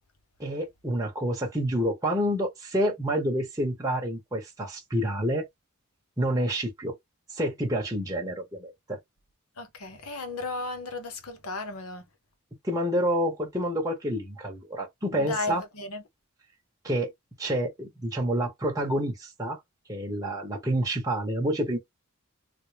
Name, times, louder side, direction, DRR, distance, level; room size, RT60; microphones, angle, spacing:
voice 1, 0.4-5.5 6.2-6.9 7.3-9.0 12.6-15.6 16.8-17.1 17.4-19.6 19.9-21.8, equal, 15° right, 1.0 m, -28 dB
voice 2, 9.6-12.0 15.1-16.0, left 3 dB, 75° left, 1.0 m, -34 dB
3.6 x 2.3 x 3.3 m
head